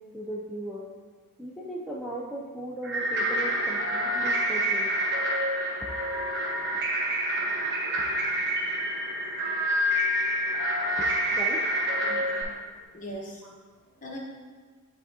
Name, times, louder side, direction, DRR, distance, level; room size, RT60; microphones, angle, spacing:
voice 1, 0.1-0.8 1.4-4.9 5.9-6.0 11.3-11.6, right 1 dB, ahead, -5 dB, 0.4 m, -37 dB
sound 1, 2.8-12.4, equal, 55° right, 1.0 m, -27 dB
voice 2, 12.0-13.4 14.0-14.2, equal, 35° left, -3 dB, 1.1 m, -41 dB
10.0 x 3.5 x 2.8 m, 1.5 s
head